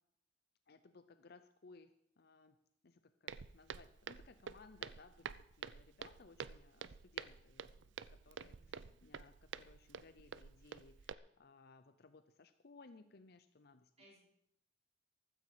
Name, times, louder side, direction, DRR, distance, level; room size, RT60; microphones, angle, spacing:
voice 1, 0.7-1.9 2.2-2.6 2.8-13.9, left 3 dB, 60° left, 10 dB, 0.7 m, -62 dB
Walk footsteps, 3.3-11.1, right 6 dB, 80° right, 0.5 m, -49 dB
voice 2, 8.3-8.9 14.0-14.2, equal, 35° right, -3 dB, 4.9 m, -66 dB
15.0 x 13.5 x 5.0 m, 0.75 s
head